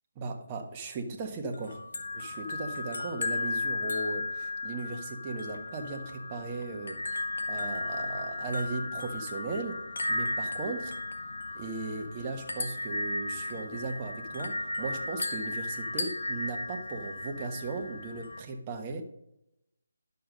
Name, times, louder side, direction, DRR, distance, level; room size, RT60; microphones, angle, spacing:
voice 1, 0.1-1.8 2.1-7.0 7.5-9.8 10.1-11.0 11.5-19.0, right 3 dB, 25° right, 3 dB, 1.4 m, -37 dB
sound 1, 1.5-18.4, left 2 dB, 65° left, 1.5 m, -35 dB
11.0 x 6.9 x 5.3 m, 0.85 s
figure-of-eight pair, 155°, 0 cm